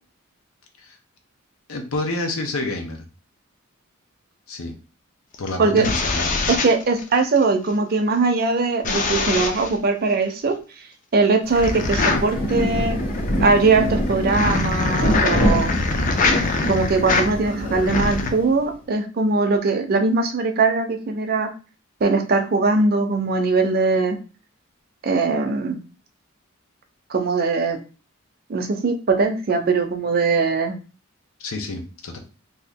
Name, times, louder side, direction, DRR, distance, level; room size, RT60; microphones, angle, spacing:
voice 1, 1.7-3.0 4.5-4.7 5.4-6.5 31.4-32.2, left 2 dB, 80° left, 5 dB, 0.7 m, -28 dB
sound 1, 5.3-7.4 8.8-9.8 11.5-18.3, left 3 dB, 35° left, 0.4 m, -24 dB
voice 2, 6.5-10.6 11.1-13.0 13.4-15.7 16.7-21.5 22.0-24.2 25.0-25.8 27.1-27.8 28.5-30.7, right 3 dB, 45° right, 6 dB, 0.5 m, -20 dB
Rain, 11.4-18.7, equal, 60° left, 1.6 m, -25 dB
2.8 x 2.4 x 3.4 m, 0.35 s
head